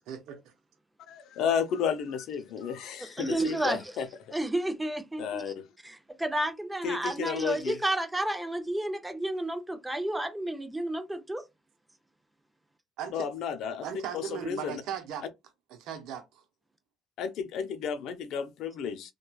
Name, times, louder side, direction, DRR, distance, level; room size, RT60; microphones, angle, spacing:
voice 1, 0.1-0.4 13.0-13.1 13.8-15.3 15.7-16.4, right 8 dB, 80° right, 0.7 m, -37 dB
voice 2, 1.1-4.1 5.2-5.6 6.8-7.8 13.1-13.9 14.1-14.8 17.2-19.1, left 7 dB, 70° left, 0.5 m, -32 dB
voice 3, 3.0-3.9 4.3-5.5 5.8-11.4, right 1 dB, 10° right, 0.6 m, -31 dB
3.0 x 2.2 x 2.3 m
cardioid pair, 95°, 0 cm